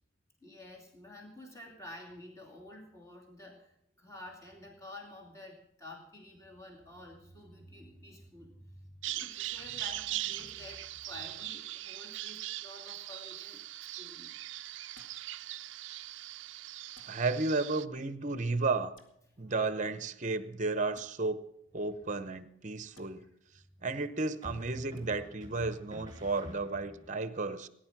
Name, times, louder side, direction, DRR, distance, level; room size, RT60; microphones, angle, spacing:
voice 1, 0.4-13.6 13.9-14.3 19.3-19.5 22.7-23.3, left 1 dB, 15° left, -1 dB, 2.7 m, -50 dB
Bird vocalization bird call bird song, 9.0-17.9, right 15 dB, 65° right, 0.4 m, -41 dB
sound 1, 14.9-15.2 16.9-17.2 18.9-19.1 20.9-21.1 22.9-23.1 24.9-25.0, left 1 dB, 65° left, 2.2 m, -59 dB
voice 2, 17.1-19.0 19.4-21.4 21.7-23.2 23.8-27.7, right 3 dB, 35° right, 13 dB, 0.8 m, -33 dB
sound 2, 21.8-22.4 24.4-27.1, equal, 20° right, 2.6 m, -49 dB
19.0 x 10.5 x 5.9 m, 0.76 s
head